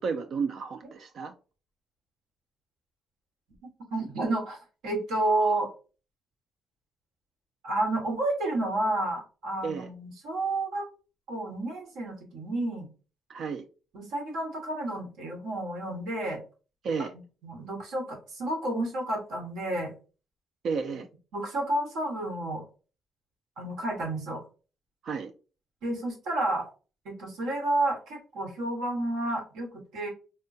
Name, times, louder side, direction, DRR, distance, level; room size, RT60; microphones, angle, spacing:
voice 1, 0.0-1.3 9.6-9.9 13.3-13.6 16.8-17.1 20.6-21.1 25.0-25.3, right 5 dB, 65° right, 7 dB, 0.3 m, -32 dB
voice 2, 3.6-4.6 4.8-5.7 7.6-10.9 11.3-12.9 13.9-16.4 17.4-19.9 21.3-22.6 23.6-24.4 25.8-26.7 27.0-30.1, right 2 dB, 90° right, 1 dB, 1.3 m, -30 dB
3.6 x 2.1 x 2.6 m, 0.34 s
cardioid pair, 90°, 0 cm